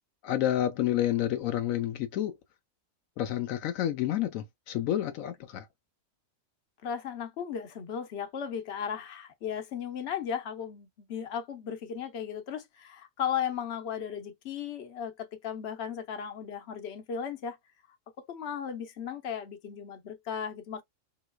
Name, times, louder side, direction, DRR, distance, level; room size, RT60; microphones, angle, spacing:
voice 1, 0.2-2.3 3.2-5.7, left 12 dB, 80° left, 1.0 m, -29 dB
voice 2, 6.8-17.6 18.3-20.8, left 8 dB, 60° left, 1.0 m, -36 dB
3.7 x 2.8 x 2.2 m
omnidirectional pair, 1.4 m